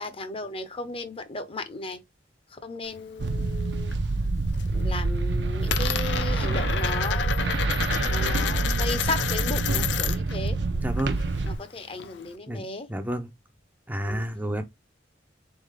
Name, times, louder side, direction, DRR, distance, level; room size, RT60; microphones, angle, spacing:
voice 1, 0.0-2.0 2.5-3.9 4.7-7.6 8.1-10.6 11.4-12.9 14.0-14.2, left 2 dB, 30° left, 0.6 m, -35 dB
Coin (dropping), 2.8-4.0 4.3-4.8 5.1-10.4 10.6-12.3, left 8 dB, 75° left, 0.5 m, -31 dB
sound 1, 3.2-11.6, right 3 dB, 70° right, 0.6 m, -27 dB
voice 2, 10.8-11.2 12.5-13.3 13.9-14.6, equal, 10° right, 0.5 m, -30 dB
3.9 x 3.6 x 3.2 m
head